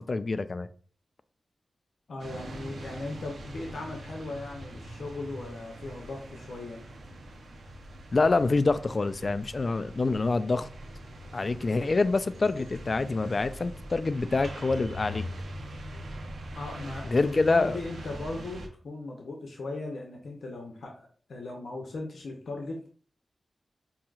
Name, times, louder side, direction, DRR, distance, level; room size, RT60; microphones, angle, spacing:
voice 1, 0.1-0.7 8.1-10.7 11.3-15.2 17.1-17.8, left 3 dB, 45° left, 0.3 m, -26 dB
voice 2, 2.1-6.8 16.6-22.9, left 2 dB, 85° left, 0.7 m, -38 dB
sound 1, 2.2-18.7, equal, 85° right, 0.7 m, -42 dB
5.4 x 2.8 x 2.4 m
wide cardioid pair, 80°, 0 cm